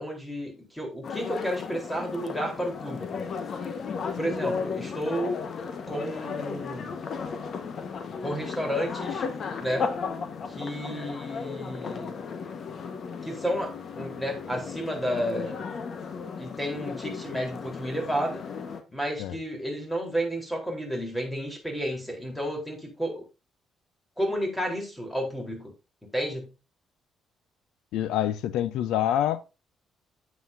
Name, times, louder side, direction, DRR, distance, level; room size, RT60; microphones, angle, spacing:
voice 1, 0.0-3.1 4.2-5.4 5.9-7.0 8.2-9.3 9.6-9.9 10.5-12.2 13.2-15.6 16.4-18.4 18.9-23.2 24.2-25.7 26.1-26.5, equal, 10° left, 4.2 m, -31 dB
sound 1, 1.0-18.8, left 5 dB, 55° left, 1.5 m, -35 dB
voice 2, 27.9-29.4, left 11 dB, 90° left, 0.8 m, -26 dB
9.5 x 8.5 x 2.8 m
cardioid pair, 90°, 0 cm